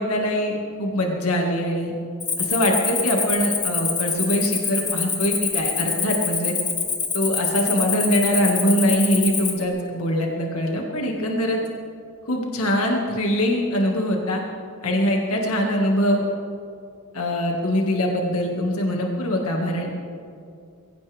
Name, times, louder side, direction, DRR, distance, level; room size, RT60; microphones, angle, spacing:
voice 1, 0.0-1.9 2.4-6.6 7.1-11.6 12.3-14.4 14.8-16.2 17.1-19.9, equal, 90° left, 0 dB, 2.1 m, -23 dB
Cricket, 2.2-9.6, left 5 dB, 20° left, 1.7 m, -26 dB
22.5 x 16.5 x 3.6 m, 2.4 s
head